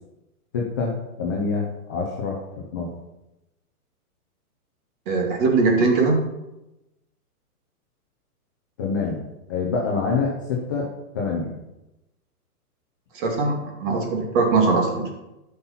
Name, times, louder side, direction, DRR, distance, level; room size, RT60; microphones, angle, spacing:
voice 1, 0.5-0.9 1.2-2.9 8.8-9.2 9.5-10.9 11.1-11.5, left 4 dB, 15° left, -3 dB, 0.5 m, -26 dB
voice 2, 5.1-6.2 13.1-15.1, right 3 dB, 35° right, 1 dB, 2.4 m, -21 dB
12.5 x 5.8 x 5.7 m, 0.96 s
hypercardioid pair, 160°, 46 cm